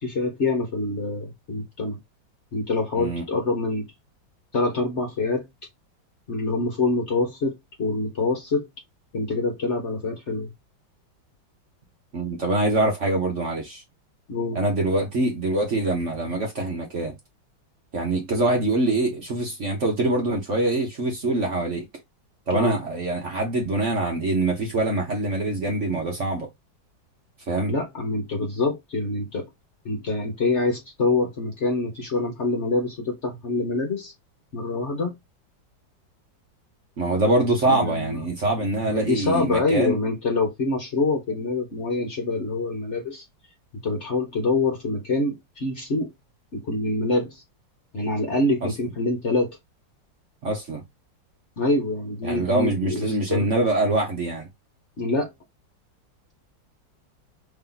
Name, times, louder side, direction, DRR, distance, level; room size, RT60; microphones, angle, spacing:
voice 1, 0.0-2.0 2.5-3.8 4.5-5.5 6.3-8.7 9.1-10.5 14.3-14.6 22.5-22.8 27.7-29.5 29.8-34.1 34.5-35.1 37.7-38.2 38.8-43.2 43.8-46.1 46.5-47.4 47.9-49.6 51.6-53.5 55.0-55.3, left 2 dB, 45° left, 1.1 m, -25 dB
voice 2, 2.9-3.2 12.1-13.8 14.5-17.1 17.9-21.8 22.5-26.5 27.5-27.7 37.0-40.0 48.6-48.7 50.4-50.8 52.2-54.5, right 2 dB, 45° right, 1.1 m, -24 dB
3.4 x 2.8 x 3.8 m
omnidirectional pair, 2.0 m